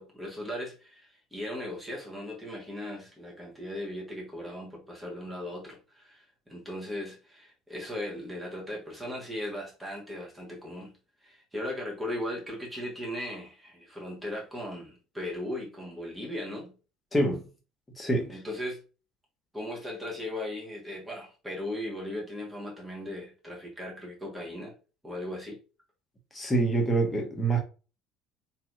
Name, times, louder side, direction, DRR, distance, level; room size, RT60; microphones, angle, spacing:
voice 1, 0.0-16.7 18.3-18.8 19.5-24.7 25.0-25.6, left 1 dB, 5° right, 1.5 m, -38 dB
voice 2, 17.1-17.4 18.0-18.4 26.3-27.6, right 2 dB, 15° left, 1.2 m, -26 dB
3.2 x 2.8 x 2.5 m
figure-of-eight pair, 60°, 0 cm